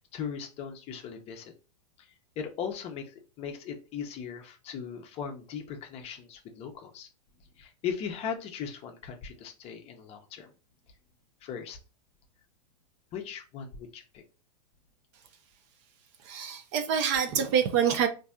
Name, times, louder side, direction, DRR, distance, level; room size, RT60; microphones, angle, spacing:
voice 1, 0.1-1.5 2.0-2.1 2.4-7.1 7.6-10.5 11.4-11.8 13.1-14.2, left 7 dB, 30° left, 5 dB, 0.6 m, -38 dB
voice 2, 16.3-18.1, right 8 dB, 45° right, 7 dB, 0.6 m, -26 dB
4.1 x 2.6 x 2.3 m, 0.33 s
hypercardioid pair, 125°, 21 cm